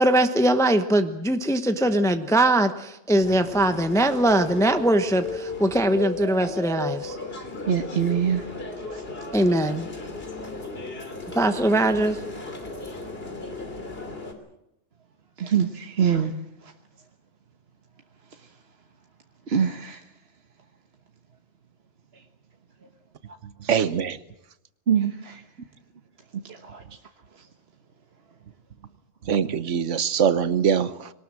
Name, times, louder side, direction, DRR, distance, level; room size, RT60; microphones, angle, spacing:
voice 1, 0.0-7.2 9.3-9.9 11.3-12.2, right 1 dB, 5° left, 8 dB, 0.9 m, -21 dB
sound 1, 3.2-14.3, left 2 dB, 50° left, 3.2 m, -35 dB
voice 2, 7.7-8.5 8.9-9.0 15.4-16.3 16.6-16.7 19.5-20.0 24.9-25.4 26.4-26.8 27.4-27.5, right 8 dB, 55° right, 5 dB, 1.4 m, -24 dB
voice 3, 23.6-24.2 29.2-31.1, right 7 dB, 70° right, 14 dB, 1.3 m, -23 dB
22.0 x 19.0 x 7.6 m, 0.85 s
omnidirectional pair, 1.3 m